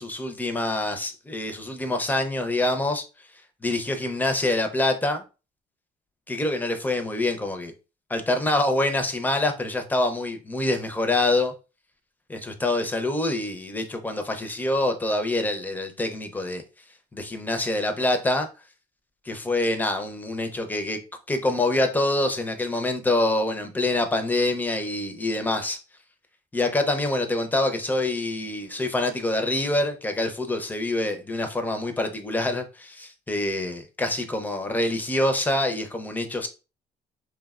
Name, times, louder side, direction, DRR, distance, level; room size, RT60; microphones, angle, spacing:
voice 1, 0.0-3.0 3.6-5.2 6.3-7.7 8.1-11.5 12.3-16.6 17.1-18.5 19.3-21.0 21.3-25.8 26.5-36.5, left 2 dB, 10° left, 0.4 m, -26 dB
3.1 x 2.0 x 2.3 m
cardioid pair, 110°, 17 cm